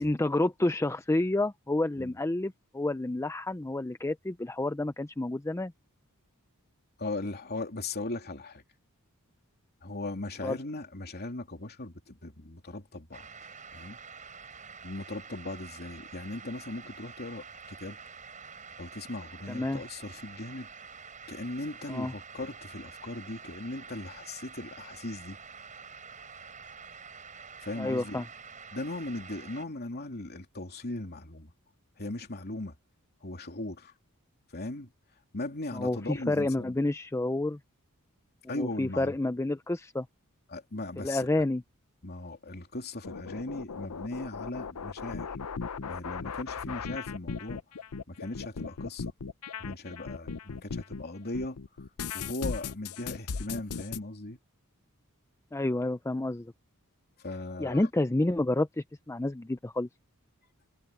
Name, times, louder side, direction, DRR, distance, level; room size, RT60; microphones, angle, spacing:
voice 1, 0.0-5.7 10.4-10.6 19.5-19.8 21.9-22.1 27.8-28.3 35.7-37.6 38.4-40.1 41.0-41.6 55.5-56.5 57.6-59.9, left 2 dB, 10° left, 0.5 m, -29 dB
voice 2, 7.0-8.6 9.8-13.3 13.7-14.0 14.8-18.0 18.8-20.7 21.3-25.4 27.6-28.2 28.7-31.5 32.0-32.7 33.2-33.9 34.5-34.9 35.3-36.8 38.5-39.2 40.5-41.3 42.0-45.4 45.9-47.6 48.1-49.1 49.6-51.6 52.1-54.4 57.2-57.9, left 2 dB, 45° left, 3.0 m, -38 dB
sound 1, 13.1-29.6, right 5 dB, 35° right, 6.5 m, -47 dB
sound 2, 43.0-51.0 51.3-54.0, left 5 dB, 80° left, 0.7 m, -37 dB
head